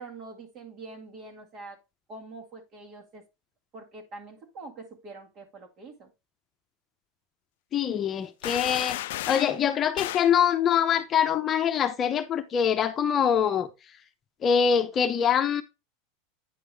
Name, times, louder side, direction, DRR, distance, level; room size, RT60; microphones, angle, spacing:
voice 1, 0.0-1.8 2.1-3.2 3.7-6.1, right 3 dB, 45° right, 1.9 m, -44 dB
voice 2, 7.7-9.0 9.3-13.7 14.4-15.6, left 8 dB, 35° left, 0.7 m, -24 dB
sound 1, 8.4-9.6 10.0-10.3, left 15 dB, 75° left, 0.3 m, -33 dB
9.3 x 4.6 x 3.4 m
supercardioid pair, 115°, 0 cm